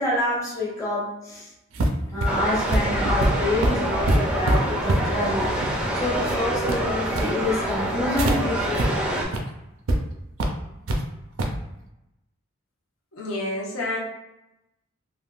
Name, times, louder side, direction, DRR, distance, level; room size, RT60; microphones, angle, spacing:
voice 1, 0.0-1.5 2.1-9.4, left 1 dB, 15° left, -6 dB, 0.7 m, -27 dB
sound 1, 1.7-8.4 8.7-8.9 9.2-9.4 9.9-10.0 10.4-11.0 11.4-11.6, right 1 dB, 75° right, 0.5 m, -25 dB
sound 2, 2.3-9.3, right 1 dB, 5° right, 0.4 m, -26 dB
voice 2, 13.1-14.0, left 1 dB, 90° left, -4 dB, 1.1 m, -29 dB
3.5 x 2.4 x 2.4 m, 0.89 s
head